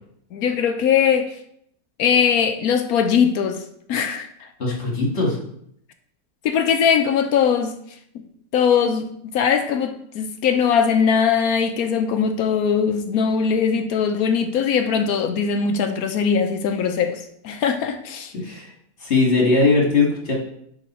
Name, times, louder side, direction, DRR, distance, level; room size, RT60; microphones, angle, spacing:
voice 1, 0.3-1.3 2.0-3.6 3.9-4.5 6.4-7.7 8.5-18.3, left 7 dB, 65° left, 7 dB, 1.0 m, -20 dB
voice 2, 4.6-5.4 18.3-18.7 19.0-20.3, left 3 dB, 40° left, -1 dB, 1.9 m, -19 dB
10.0 x 3.7 x 4.3 m, 0.71 s
omnidirectional pair, 1.9 m